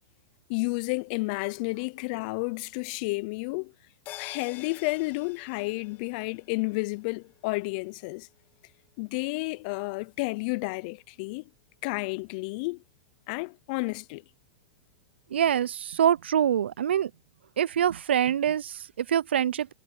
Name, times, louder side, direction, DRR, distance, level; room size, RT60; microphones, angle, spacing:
voice 1, 0.5-3.7 4.2-8.3 9.0-11.5 11.8-12.8 13.3-14.2, left 27 dB, 50° left, 0.5 m, -31 dB
sound 1, 4.1-8.8 9.1-9.2, left 14 dB, 35° left, 5.4 m, -48 dB
voice 2, 15.3-17.1 17.6-19.7, right 9 dB, 85° right, 0.4 m, -25 dB
hypercardioid pair, 125°, 6 cm